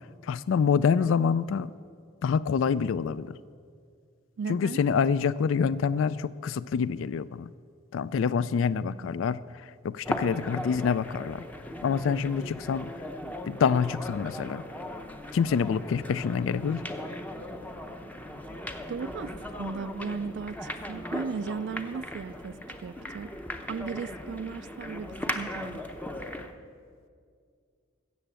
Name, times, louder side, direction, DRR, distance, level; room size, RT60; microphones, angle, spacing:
voice 1, 0.2-1.7 2.2-3.4 4.5-7.5 7.9-11.4 11.8-12.9 13.5-14.6 15.3-16.8, left 6 dB, 75° left, 0.3 m, -26 dB
voice 2, 4.4-4.8 8.9-9.1 18.9-19.3 19.6-22.6 22.8-23.4 23.7-25.8, right 5 dB, 60° right, 0.3 m, -36 dB
sound 1, 10.1-26.6, left 1 dB, 10° left, 0.6 m, -38 dB
13.5 x 8.2 x 7.5 m
head